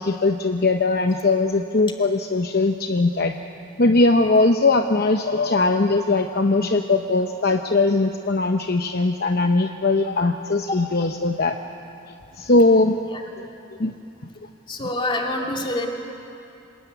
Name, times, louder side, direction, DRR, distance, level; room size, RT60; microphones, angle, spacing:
voice 1, 0.0-3.3 3.8-11.6 12.4-13.0 13.8-13.9, left 3 dB, 50° left, 5 dB, 0.8 m, -20 dB
voice 2, 14.7-15.9, left 1 dB, 25° left, 1 dB, 2.6 m, -26 dB
26.5 x 20.5 x 9.5 m, 2.8 s
head